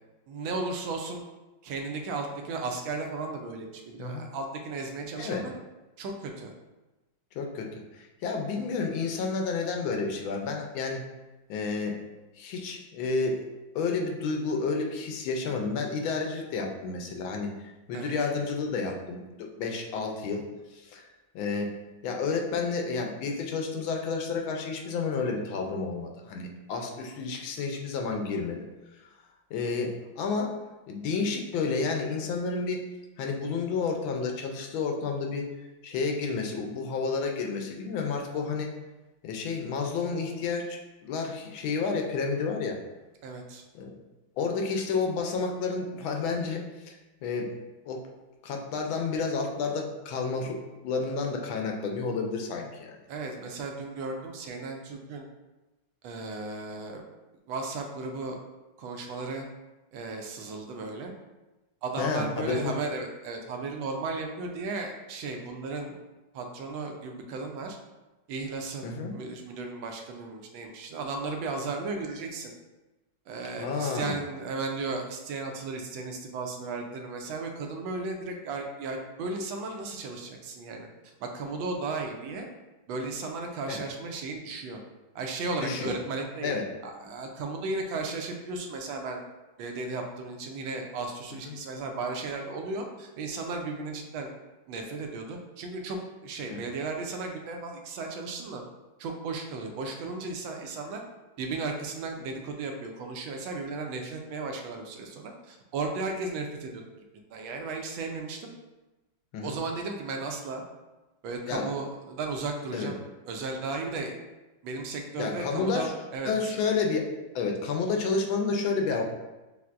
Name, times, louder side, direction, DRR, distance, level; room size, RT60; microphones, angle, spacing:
voice 1, 0.3-1.2 1.6-5.5 6.0-6.5 17.9-18.1 43.2-43.6 53.1-55.3 56.0-57.0 57.5-58.4 58.8-59.4 59.9-61.1 61.8-66.0 66.3-67.8 68.3-72.5 73.3-80.9 81.2-82.5 82.9-84.8 85.1-86.5 86.8-89.2 89.6-94.3 94.7-98.6 99.0-101.0 101.4-106.8 107.3-108.5 109.4-110.6 111.2-113.0 113.3-114.1 114.6-116.5, right 3 dB, 80° right, 3 dB, 1.3 m, -35 dB
voice 2, 7.3-11.0 11.5-12.0 12.4-13.4 13.7-17.5 17.9-20.4 20.7-21.1 21.3-21.7 22.0-28.7 29.5-30.5 30.9-32.8 33.2-35.5 35.8-38.7 39.2-42.8 43.7-43.9 44.4-47.5 47.9-48.0 48.4-52.9 62.0-62.7 68.8-69.1 73.6-74.2 83.7-83.8 85.6-85.9 86.4-86.7 91.5-91.6 96.5-96.6 109.3-109.5 111.5-111.6 112.7-112.9 115.2-115.9 116.2-119.0, left 4 dB, 85° left, 2 dB, 1.4 m, -30 dB
6.8 x 2.6 x 2.4 m, 1.1 s
omnidirectional pair, 2.2 m